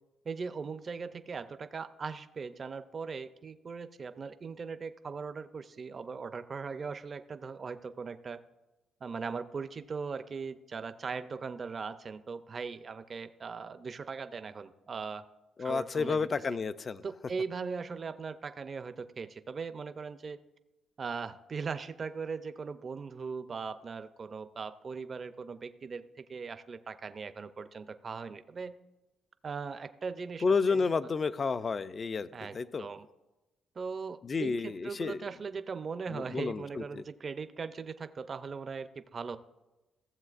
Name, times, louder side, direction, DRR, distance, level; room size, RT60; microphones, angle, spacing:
voice 1, 0.3-8.4 9.0-15.2 15.6-16.3 17.0-20.4 21.0-28.7 29.4-30.9 32.3-33.1 33.8-39.4, right 5 dB, 40° right, 11 dB, 0.5 m, -39 dB
voice 2, 15.6-17.0 30.4-32.3 32.5-32.9 34.2-35.2 36.1-37.0, left 4 dB, 40° left, 14 dB, 0.4 m, -31 dB
15.5 x 7.4 x 2.4 m, 1.0 s
cardioid pair, 90°, 0 cm